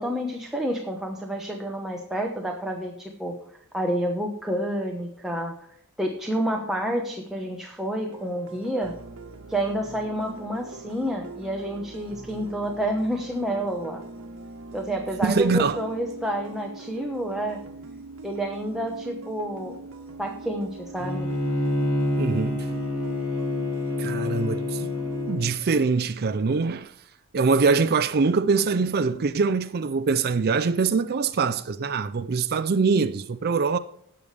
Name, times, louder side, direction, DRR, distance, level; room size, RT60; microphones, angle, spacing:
voice 1, 0.0-3.4 3.7-5.5 6.0-8.9 9.5-14.0 14.7-17.6 18.2-19.8 20.2-21.3, right 1 dB, ahead, 1.1 m, -29 dB
sound 1, 8.1-25.4, right 3 dB, 65° right, 1.2 m, -42 dB
voice 2, 15.2-15.8 22.2-22.7 24.0-24.9 25.3-26.9 27.3-33.8, right 4 dB, 45° right, 0.5 m, -23 dB
Bowed string instrument, 21.0-25.5, left 2 dB, 70° left, 3.4 m, -27 dB
18.0 x 6.7 x 3.3 m
head